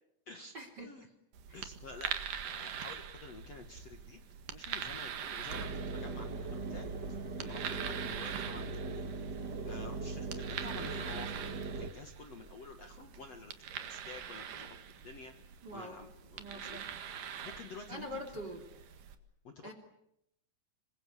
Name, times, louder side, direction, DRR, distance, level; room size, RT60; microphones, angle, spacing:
voice 1, 0.5-0.9 1.5-1.6 15.6-16.0 16.4-16.9 17.9-18.6 19.6-19.7, equal, 30° right, 6 dB, 3.0 m, -44 dB
sound 1, 1.3-19.2, right 8 dB, 60° right, 3.0 m, -44 dB
voice 2, 1.5-4.2 4.5-6.9 7.4-9.0 9.6-14.8 15.0-15.3 15.7-16.8 17.4-18.1 19.4-19.7, left 4 dB, 50° left, 5 dB, 2.1 m, -50 dB
Engine, 5.5-11.9, right 3 dB, 80° right, 0.9 m, -40 dB
27.0 x 24.0 x 8.3 m, 0.80 s
omnidirectional pair, 4.8 m